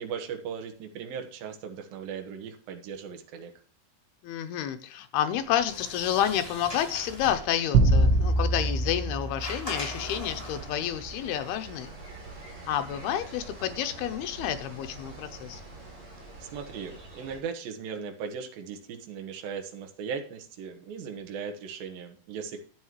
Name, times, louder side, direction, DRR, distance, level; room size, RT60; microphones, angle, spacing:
voice 1, 0.0-3.5 16.4-22.6, right 6 dB, 65° right, 5 dB, 2.9 m, -38 dB
voice 2, 4.2-11.9 12.7-15.6, left 10 dB, 80° left, 9 dB, 2.5 m, -30 dB
Sliding door, 5.3-10.9, left 1 dB, 10° left, 2.3 m, -41 dB
sound 1, 7.7-10.3, right 2 dB, 90° right, 3.1 m, -24 dB
sound 2, 10.0-17.4, right 2 dB, 40° right, 4.7 m, -45 dB
11.0 x 8.7 x 3.1 m, 0.43 s
omnidirectional pair, 4.8 m